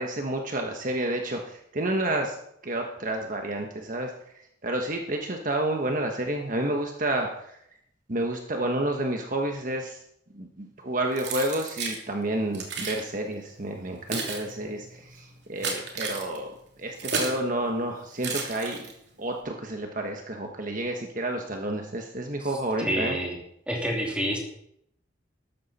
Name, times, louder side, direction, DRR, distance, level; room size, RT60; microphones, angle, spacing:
voice 1, 0.0-2.3 2.6-4.1 4.6-7.6 8.1-10.0 10.3-18.8 19.2-23.2, right 1 dB, 45° right, 2 dB, 1.3 m, -30 dB
Keys jangling, 11.2-12.0 12.5-13.0 13.7-17.4 18.2-19.1, right 4 dB, 60° right, 3.0 m, -33 dB
voice 2, 22.8-23.4 23.7-24.4, equal, 5° right, -1 dB, 2.8 m, -28 dB
13.5 x 13.0 x 4.3 m, 0.72 s
head